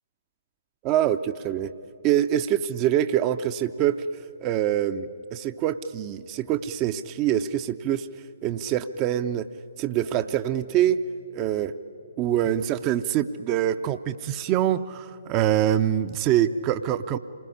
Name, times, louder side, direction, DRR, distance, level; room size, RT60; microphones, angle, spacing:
voice 1, 0.8-1.7 2.0-4.0 4.4-8.1 8.4-9.5 9.8-11.0 11.3-11.7 12.2-17.2, right 11 dB, 25° right, 11 dB, 0.6 m, -24 dB
26.5 x 20.0 x 9.9 m, 2.8 s
figure-of-eight pair, 130°, 0 cm